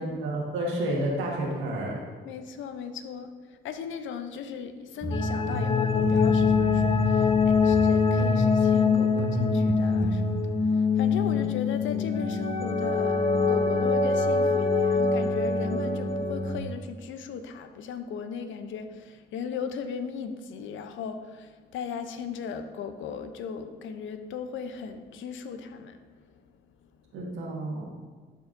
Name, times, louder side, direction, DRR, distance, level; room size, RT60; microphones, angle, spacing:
voice 1, 0.0-2.0 11.3-11.4 27.1-27.9, right 1 dB, 85° right, -2 dB, 1.6 m, -30 dB
voice 2, 2.2-26.3, left 6 dB, 75° left, 8 dB, 0.6 m, -37 dB
sound 1, 5.0-10.3, left 3 dB, 15° right, 1.1 m, -31 dB
sound 2, 5.1-16.6, left 4 dB, 30° left, 0.7 m, -24 dB
11.5 x 4.5 x 2.6 m, 1.4 s
cardioid pair, 90°, 20 cm